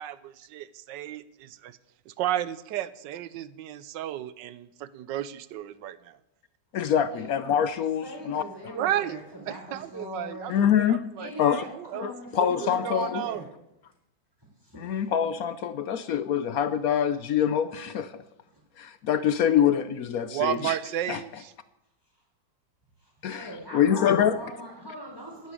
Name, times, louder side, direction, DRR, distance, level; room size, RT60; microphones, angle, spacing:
voice 1, 0.0-1.8 2.1-6.2 8.7-9.2 9.5-13.4 20.2-21.5, right 12 dB, 75° right, 16 dB, 1.4 m, -33 dB
voice 2, 6.7-8.4 10.5-11.0 11.4-11.6 12.0-13.2 14.7-18.2 18.8-20.7 21.1-21.2 23.2-24.4, left 9 dB, 65° left, 13 dB, 0.9 m, -25 dB
voice 3, 8.0-10.6 11.2-13.5 14.6-15.0 18.5-18.6 23.0-25.5, equal, 10° right, -1 dB, 4.4 m, -41 dB
11.0 x 11.0 x 8.4 m, 0.87 s
omnidirectional pair, 2.0 m